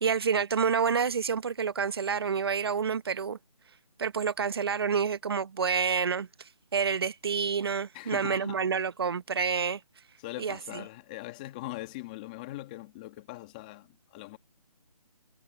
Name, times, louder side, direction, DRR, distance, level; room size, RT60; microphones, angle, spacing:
voice 1, 0.0-3.4 4.0-6.3 6.7-9.8 10.4-10.8, right 6 dB, 40° right, 1.0 m, -28 dB
voice 2, 7.9-8.6 10.2-14.4, left 18 dB, 10° left, 1.5 m, -41 dB
hypercardioid pair, 170°, 19 cm